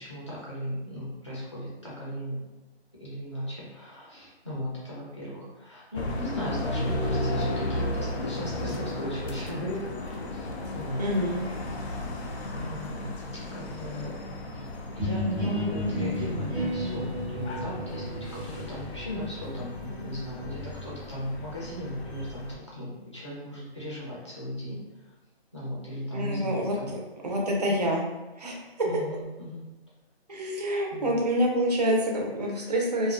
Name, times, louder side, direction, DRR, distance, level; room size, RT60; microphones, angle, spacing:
voice 1, 0.0-2.4 3.0-11.3 12.5-13.1 13.4-14.2 14.6-24.8 25.5-27.0 28.8-29.7 30.9-31.2, equal, 30° left, -7 dB, 0.6 m, -37 dB
sound 1, 5.9-22.5, left 1 dB, 80° left, 0.6 m, -35 dB
voice 2, 11.0-11.4 26.1-28.0 28.4-28.6 30.3-33.1, equal, 40° right, -2 dB, 0.4 m, -27 dB
sound 2, 15.0-20.6, equal, 5° right, 0.8 m, -33 dB
2.5 x 2.1 x 2.4 m, 1.1 s
hypercardioid pair, 175°, 32 cm